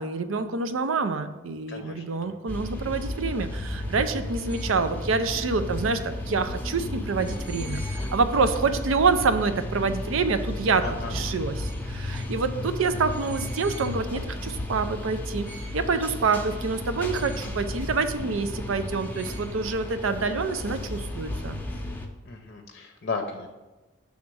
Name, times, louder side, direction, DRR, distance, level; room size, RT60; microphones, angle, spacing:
voice 1, 0.0-10.8 11.1-15.5 15.7-21.6, right 4 dB, 90° right, 9 dB, 0.5 m, -27 dB
voice 2, 1.7-2.4 10.8-11.1 22.2-23.5, left 4 dB, 50° left, 4 dB, 0.6 m, -35 dB
sound 1, 2.5-22.1, left 1 dB, 10° left, 0.6 m, -33 dB
6.2 x 3.6 x 6.1 m, 1.1 s
head